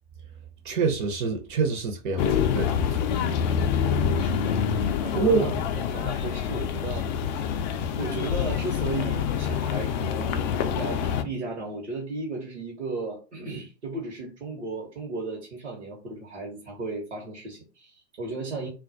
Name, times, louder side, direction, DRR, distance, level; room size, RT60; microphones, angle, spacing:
voice 1, 0.6-3.1 5.1-5.5, right 4 dB, 45° right, 0.6 m, -26 dB
sound 1, 2.2-11.2, left 7 dB, 45° left, 0.4 m, -26 dB
voice 2, 4.2-7.1 8.0-10.4 10.7-18.7, right 3 dB, 75° right, 0.9 m, -35 dB
2.2 x 2.1 x 2.6 m
figure-of-eight pair, 100°, 33 cm